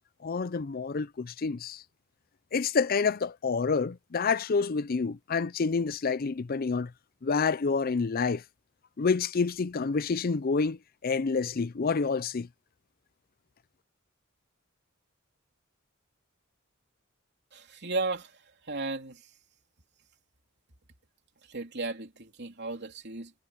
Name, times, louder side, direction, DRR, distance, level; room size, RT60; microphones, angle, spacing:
voice 1, 0.2-1.8 2.5-6.9 7.2-8.4 9.0-12.5, left 5 dB, 45° left, 0.5 m, -28 dB
voice 2, 17.5-18.4 18.6-19.2 21.5-23.3, right 3 dB, 55° right, 3.4 m, -35 dB
head